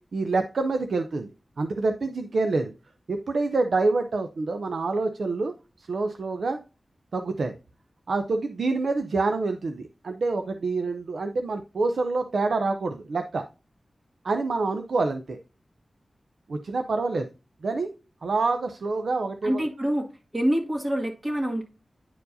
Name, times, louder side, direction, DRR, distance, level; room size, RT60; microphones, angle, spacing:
voice 1, 0.1-1.3 1.6-2.7 3.1-6.6 7.1-7.5 8.1-13.4 14.2-15.4 16.5-17.3 17.6-17.9 18.2-19.6, right 3 dB, 85° right, 6 dB, 0.5 m, -27 dB
voice 2, 19.4-20.1 20.3-21.6, equal, 30° right, 0 dB, 1.8 m, -26 dB
9.8 x 4.5 x 2.6 m, 0.31 s
wide cardioid pair, 105°, 0 cm